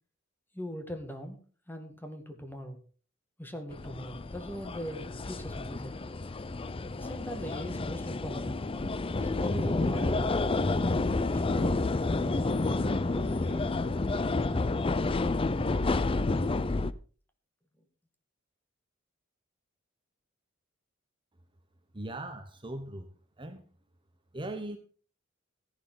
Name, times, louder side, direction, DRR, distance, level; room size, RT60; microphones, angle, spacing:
voice 1, 0.5-1.4 1.7-2.8 3.4-5.9 7.0-8.7 9.2-10.6 11.3-13.8 14.5-14.7, equal, 10° left, 5 dB, 2.2 m, -40 dB
sound 1, 3.7-16.9, left 3 dB, 25° left, 0.5 m, -30 dB
voice 2, 21.9-23.1 23.4-23.6 24.3-24.8, right 1 dB, 25° right, 7 dB, 1.0 m, -39 dB
14.5 x 11.0 x 3.9 m, 0.39 s
head